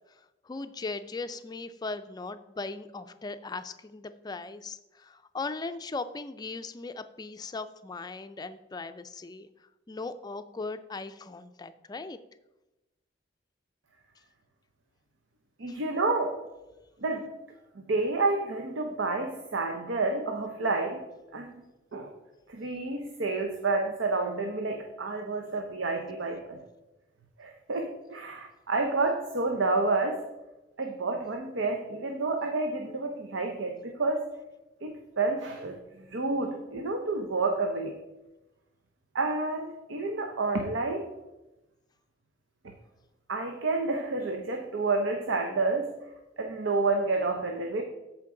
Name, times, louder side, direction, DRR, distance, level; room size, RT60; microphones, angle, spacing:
voice 1, 0.4-9.5 9.9-12.2 15.7-15.8, left 3 dB, 20° left, 11 dB, 0.4 m, -38 dB
voice 2, 15.6-16.4 17.0-17.3 17.8-21.0 21.3-21.5 21.9-22.1 22.5-26.6 27.4-30.3 30.8-34.3 34.8-38.0 39.1-41.1 43.3-45.9 46.4-47.8, right 3 dB, 90° right, 3 dB, 0.8 m, -29 dB
13.5 x 4.6 x 3.8 m, 1.0 s
head